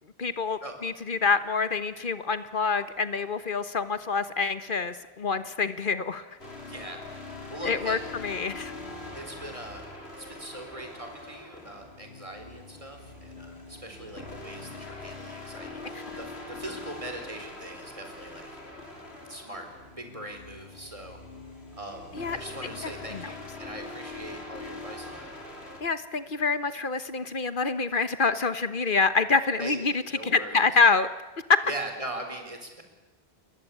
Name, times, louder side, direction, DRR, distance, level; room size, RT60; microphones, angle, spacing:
voice 1, 0.2-6.2 7.6-8.7 15.9-16.0 22.1-22.4 23.1-23.3 25.8-31.1 31.5-31.6, left 4 dB, 55° left, 12 dB, 1.4 m, -26 dB
sound 1, 6.4-25.8, left 2 dB, 85° left, 4.0 m, -43 dB
voice 2, 6.6-7.0 7.5-8.0 9.2-9.8 10.1-18.5 19.3-21.2 21.8-25.3 29.6-29.8 30.1-30.6 31.6-32.8, right 1 dB, 30° right, 5 dB, 4.4 m, -41 dB
29.0 x 21.5 x 8.6 m, 1.1 s
omnidirectional pair, 1.1 m